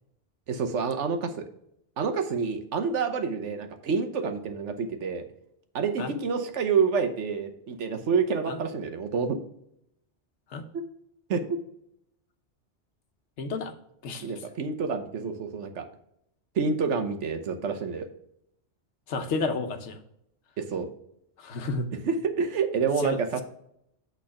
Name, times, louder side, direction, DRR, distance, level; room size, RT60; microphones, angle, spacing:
voice 1, 0.5-1.4 2.0-5.2 5.7-9.4 11.3-11.6 14.2-15.8 16.5-18.1 20.6-20.9 22.0-23.4, right 5 dB, 90° right, 7 dB, 1.2 m, -28 dB
voice 2, 13.4-13.7 14.0-14.3 19.1-20.0 21.4-21.9 23.0-23.4, left 3 dB, 80° left, 7 dB, 1.2 m, -31 dB
8.6 x 3.9 x 5.6 m, 0.76 s
omnidirectional pair, 1.2 m